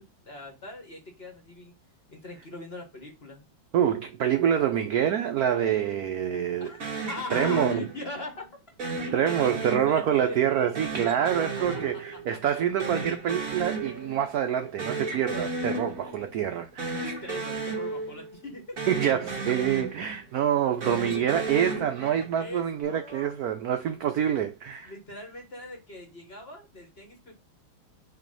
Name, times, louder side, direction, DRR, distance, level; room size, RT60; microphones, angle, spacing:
voice 1, 0.0-1.7 2.1-3.5 6.6-6.8 7.1-8.5 9.2-10.9 11.4-11.6 12.3-12.4 16.0-16.6 16.9-18.8 22.4-23.3 24.8-27.3, left 2 dB, 35° left, 1.6 m, -41 dB
voice 2, 3.7-6.7 7.3-7.9 9.1-17.1 18.9-24.9, right 9 dB, 70° right, 0.9 m, -26 dB
sound 1, 6.8-8.3 8.8-10.3 10.7-12.5 12.8-14.3 14.6-16.3 16.7-18.5 18.8-20.3 20.7-22.5, right 3 dB, 45° right, 1.9 m, -34 dB
6.1 x 2.9 x 5.2 m
omnidirectional pair, 2.2 m